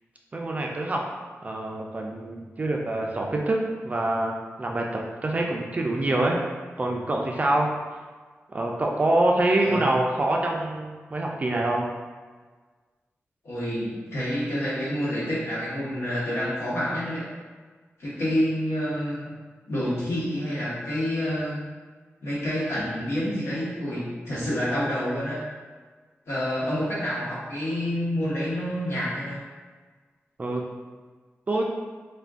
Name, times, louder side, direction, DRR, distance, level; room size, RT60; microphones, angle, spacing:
voice 1, 0.3-1.0 1.4-6.4 6.8-7.7 8.5-11.8 30.4-30.6 31.5-31.6, right 2 dB, 30° right, 0 dB, 0.3 m, -25 dB
voice 2, 13.4-17.2 18.0-19.3 19.7-21.6 22.2-25.4 26.3-29.4, equal, 75° left, -8 dB, 1.0 m, -28 dB
2.4 x 2.1 x 3.4 m, 1.4 s
wide cardioid pair, 125°, 5 cm